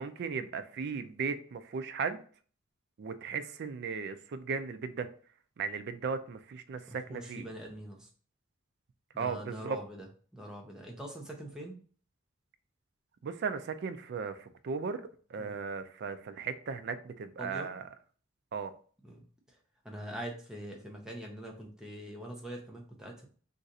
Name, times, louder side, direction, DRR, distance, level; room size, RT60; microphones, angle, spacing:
voice 1, 0.0-2.2 3.0-5.1 5.6-7.5 9.2-9.8 13.2-15.0 15.3-17.8 18.5-18.7, right 5 dB, 55° right, 0.3 m, -36 dB
voice 2, 6.9-8.1 9.1-10.1 10.3-11.8 15.4-15.6 17.4-17.7 19.0-19.2 19.5-19.6 19.8-23.3, right 1 dB, 5° right, 0.6 m, -43 dB
2.6 x 2.4 x 4.0 m
head